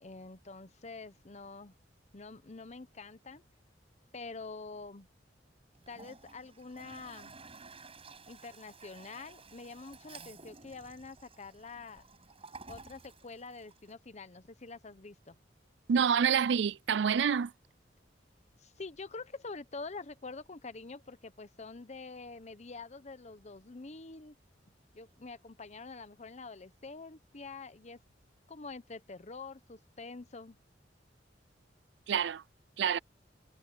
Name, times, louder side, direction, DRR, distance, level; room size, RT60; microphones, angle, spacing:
voice 1, 0.0-1.7 2.1-3.4 4.1-5.1 5.9-7.4 8.3-12.0 12.7-15.4 18.6-24.3 24.9-28.0 28.5-30.6, left 3 dB, 40° left, 0.9 m, -46 dB
Toilet flush, 5.7-13.9, right 4 dB, 35° right, 5.9 m, -53 dB
voice 2, 15.9-17.5 32.1-32.4 32.8-33.0, right 7 dB, 75° right, 0.4 m, -27 dB
head